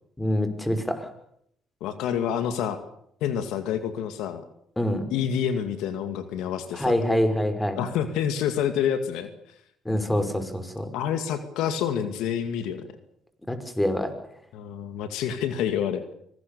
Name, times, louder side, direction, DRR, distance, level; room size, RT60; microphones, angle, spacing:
voice 1, 0.2-1.1 4.8-5.0 6.7-7.8 9.9-10.9 13.5-14.1, left 1 dB, 10° left, 9 dB, 5.7 m, -25 dB
voice 2, 1.8-2.8 3.2-4.4 5.1-7.0 7.8-9.3 10.9-12.9 14.5-16.1, left 8 dB, 80° left, 10 dB, 2.3 m, -28 dB
25.5 x 20.0 x 6.9 m, 0.70 s
supercardioid pair, 65°, 0 cm